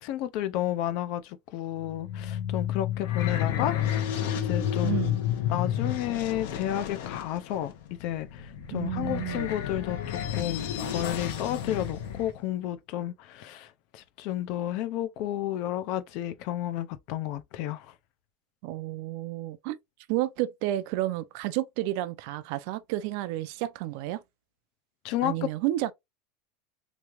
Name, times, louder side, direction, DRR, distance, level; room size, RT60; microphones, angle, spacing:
voice 1, 0.0-4.1 4.4-5.0 5.5-17.9 25.0-25.5, left 12 dB, 50° left, 0.5 m, -32 dB
sound 1, 1.8-12.3, left 10 dB, 70° left, 0.9 m, -31 dB
voice 2, 4.8-5.2 8.7-9.5 18.6-19.8 20.1-24.2 25.2-25.9, right 15 dB, 55° right, 0.4 m, -31 dB
3.5 x 3.1 x 3.0 m
supercardioid pair, 160°, 0 cm